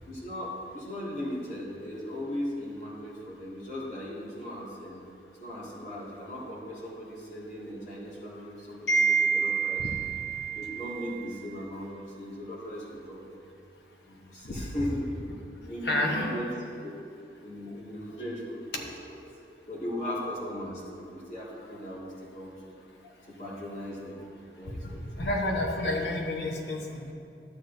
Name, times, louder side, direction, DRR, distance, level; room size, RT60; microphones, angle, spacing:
voice 1, 0.1-5.0 5.4-9.9 10.5-13.4 14.1-15.1 15.6-16.9 17.4-19.2 19.7-22.7 23.0-24.3 24.6-25.0, equal, 40° left, -7 dB, 2.2 m, -38 dB
voice 2, 8.9-11.1 14.4-14.6 15.8-16.3 24.9-27.1, right 2 dB, 80° left, 0 dB, 1.2 m, -28 dB
12.0 x 8.2 x 2.7 m, 2.6 s
head